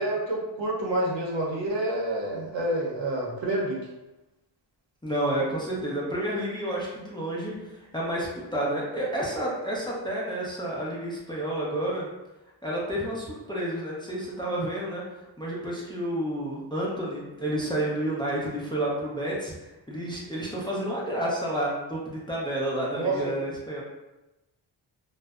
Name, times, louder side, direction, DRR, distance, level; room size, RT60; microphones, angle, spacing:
voice 1, 0.0-3.9 23.0-23.3, right 1 dB, 70° right, -3 dB, 0.7 m, -28 dB
voice 2, 5.0-7.5 7.9-12.1 12.6-15.0 15.4-23.8, right 1 dB, 10° left, -6 dB, 0.4 m, -30 dB
2.6 x 2.1 x 2.3 m, 0.99 s
wide cardioid pair, 100°, 47 cm